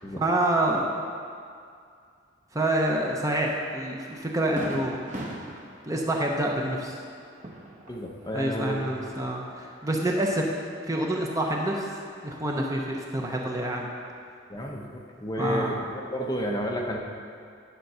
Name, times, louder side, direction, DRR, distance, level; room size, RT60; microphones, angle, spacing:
voice 1, 0.1-0.9 2.5-5.0 5.8-7.0 8.3-10.5 10.9-11.9 12.2-13.9 15.4-15.8, right 1 dB, 15° right, -1 dB, 0.7 m, -27 dB
Fireworks, 3.5-3.7 4.1-4.2 4.6-8.3 8.6-9.5, right 1 dB, 40° right, 1.1 m, -40 dB
voice 2, 7.9-8.9 14.5-17.0, equal, 20° left, 0 dB, 0.7 m, -31 dB
10.5 x 4.5 x 6.7 m, 2.3 s
head